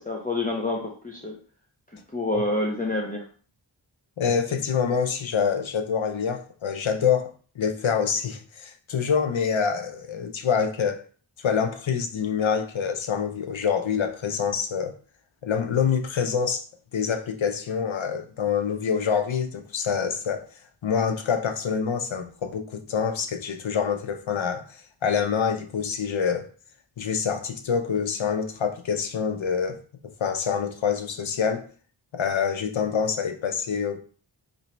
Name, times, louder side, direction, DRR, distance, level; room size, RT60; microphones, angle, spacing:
voice 1, 0.0-1.4 2.1-3.2, left 2 dB, 20° left, 0.7 m, -27 dB
voice 2, 4.2-11.0 11.4-14.9 15.4-16.6 16.9-20.4 20.8-24.6 25.0-26.5 27.0-29.8 30.2-31.7 32.1-34.0, left 6 dB, 80° left, 0.6 m, -26 dB
3.0 x 2.6 x 4.3 m
wide cardioid pair, 40°, 46 cm